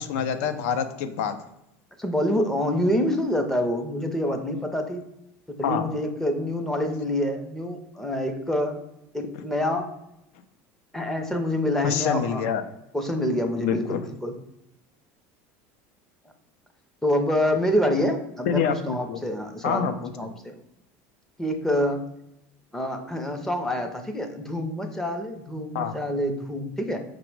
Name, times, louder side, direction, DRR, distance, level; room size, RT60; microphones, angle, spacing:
voice 1, 0.0-1.4 5.6-5.9 11.8-12.6 13.6-14.0 18.5-19.2 19.6-20.1 25.7-26.0, left 7 dB, 80° left, 9 dB, 0.4 m, -26 dB
voice 2, 2.0-5.0 5.5-8.8 9.1-9.9 10.9-12.4 12.9-14.3 17.0-18.6 18.9-20.5 21.4-22.0 22.7-27.0, left 1 dB, 5° left, 5 dB, 0.5 m, -26 dB
5.0 x 2.0 x 4.5 m, 0.84 s
cardioid pair, 140°, 7 cm